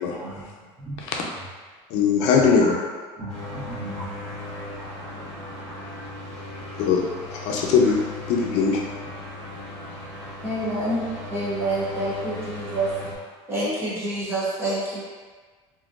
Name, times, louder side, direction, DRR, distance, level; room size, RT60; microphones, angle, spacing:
voice 1, 0.1-0.4 0.8-0.9 2.2-2.4 3.2-4.2 4.8-5.8, right 2 dB, 35° right, -9 dB, 1.2 m, -38 dB
voice 2, 1.9-2.8 6.8-7.0 7.3-8.0 8.3-8.8, left 5 dB, 65° left, 0 dB, 0.6 m, -20 dB
sound 1, 3.3-13.2, left 1 dB, 10° left, 1.3 m, -37 dB
voice 3, 10.4-12.9 13.5-15.0, right 1 dB, 20° right, -8 dB, 0.7 m, -27 dB
3.7 x 2.7 x 2.4 m, 1.5 s
cardioid pair, 160°, 12 cm